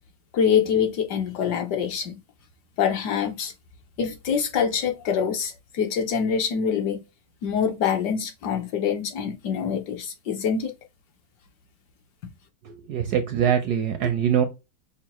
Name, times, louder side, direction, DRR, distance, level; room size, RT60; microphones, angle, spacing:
voice 1, 0.3-2.2 2.8-3.5 4.0-7.0 7.4-10.7, left 7 dB, 65° left, 1.1 m, -25 dB
voice 2, 12.6-14.5, right 8 dB, 75° right, 0.9 m, -23 dB
5.8 x 2.1 x 2.9 m
omnidirectional pair, 2.1 m